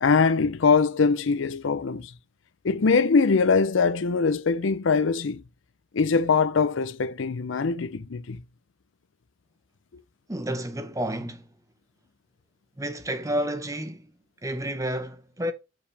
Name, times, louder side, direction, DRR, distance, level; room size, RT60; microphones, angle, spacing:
voice 1, 0.0-2.1 2.6-5.4 5.9-8.4, left 4 dB, 80° left, 0.5 m, -22 dB
voice 2, 10.3-11.4 12.8-14.1 14.4-15.5, equal, 15° right, 0.8 m, -30 dB
7.1 x 4.8 x 3.4 m
head